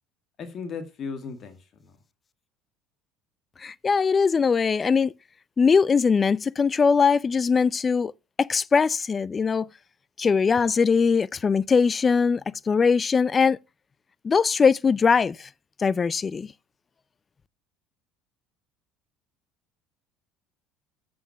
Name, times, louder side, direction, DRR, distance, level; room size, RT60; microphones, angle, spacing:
voice 1, 0.4-1.9, left 5 dB, 45° left, 2.0 m, -36 dB
voice 2, 3.6-5.1 5.6-8.1 8.4-9.7 10.2-13.6 14.2-15.5 15.8-16.5, left 5 dB, 30° left, 0.4 m, -21 dB
8.0 x 6.0 x 5.6 m
supercardioid pair, 90°, 0 cm